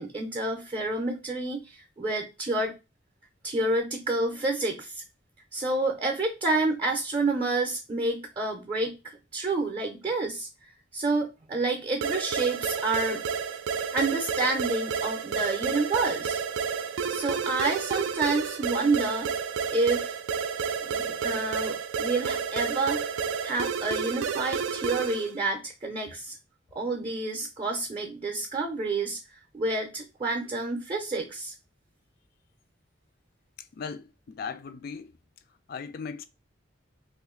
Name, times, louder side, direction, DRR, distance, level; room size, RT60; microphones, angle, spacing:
voice 1, 0.0-2.7 3.4-5.0 5.5-9.0 9.3-13.2 13.9-16.4 17.1-19.3 19.7-20.1 20.8-23.0 23.4-26.3 26.7-29.2 29.5-31.5, right 2 dB, 25° right, 0.5 m, -29 dB
sound 1, 12.0-25.3, right 6 dB, 90° right, 0.4 m, -31 dB
voice 2, 33.7-35.1 35.7-36.2, left 5 dB, 50° left, 0.3 m, -37 dB
2.6 x 2.4 x 3.7 m
head